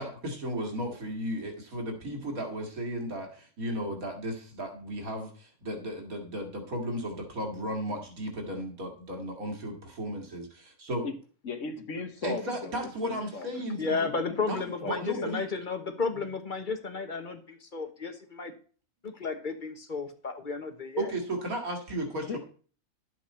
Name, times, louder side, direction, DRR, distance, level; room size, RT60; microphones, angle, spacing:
voice 1, 0.0-11.0 12.2-14.1 14.5-14.6 14.9-15.4 21.0-22.4, equal, 80° right, 3 dB, 2.6 m, -35 dB
voice 2, 11.4-15.3 22.3-22.4, left 4 dB, 60° left, 6 dB, 1.6 m, -38 dB
voice 3, 13.8-18.5 19.0-21.1, left 4 dB, 35° left, 6 dB, 1.2 m, -33 dB
12.0 x 7.7 x 4.3 m, 0.42 s
omnidirectional pair, 1.5 m